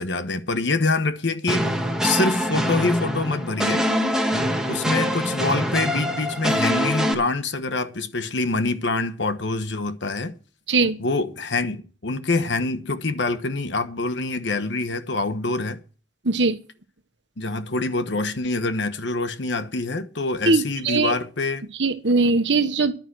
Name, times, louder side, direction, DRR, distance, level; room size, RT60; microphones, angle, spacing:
voice 1, 0.0-1.7 2.0-3.9 4.7-10.3 11.0-15.8 17.4-21.7, left 3 dB, 75° left, 1.1 m, -25 dB
sound 1, 1.5-7.1, equal, 5° right, 1.5 m, -24 dB
voice 2, 16.2-16.6 20.5-21.1 21.8-22.9, right 3 dB, 75° right, 1.3 m, -20 dB
11.0 x 9.9 x 6.3 m
head